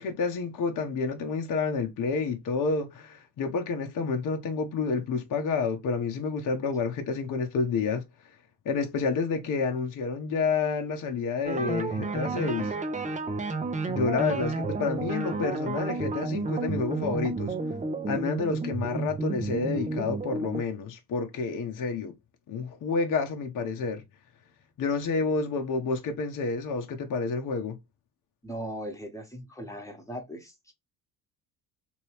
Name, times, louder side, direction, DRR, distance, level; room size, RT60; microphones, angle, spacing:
voice 1, 0.0-8.0 8.6-12.7 13.9-17.5 18.1-22.1 22.5-24.0 24.8-27.8, left 4 dB, 40° left, 0.9 m, -29 dB
sound 1, 11.4-20.6, right 3 dB, 15° right, 0.7 m, -31 dB
voice 2, 28.4-30.7, equal, 5° left, 1.3 m, -39 dB
3.0 x 2.7 x 3.1 m
hypercardioid pair, 60°, 50 cm